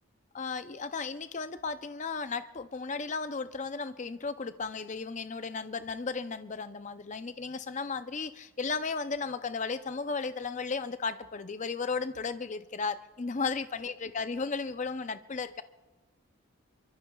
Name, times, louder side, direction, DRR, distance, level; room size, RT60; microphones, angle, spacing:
voice 1, 0.3-15.6, left 4 dB, 35° left, 11 dB, 0.5 m, -35 dB
26.5 x 23.5 x 2.3 m, 1.2 s
head